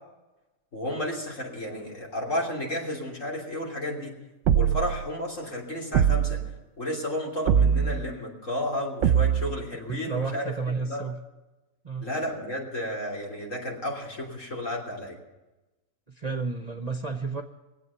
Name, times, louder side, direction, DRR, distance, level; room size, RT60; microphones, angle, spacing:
voice 1, 0.7-4.1 4.5-6.4 6.8-10.5 10.8-11.0 12.0-15.2, left 1 dB, 65° left, -2 dB, 3.6 m, -32 dB
sound 1, 4.5-5.1 5.9-6.5 7.5-8.1 9.0-9.6, right 8 dB, 70° right, 1.0 m, -22 dB
voice 2, 9.9-11.2 11.8-12.1 16.1-17.4, right 4 dB, 35° right, 6 dB, 0.8 m, -31 dB
22.5 x 8.4 x 6.9 m, 1.1 s
omnidirectional pair, 1.4 m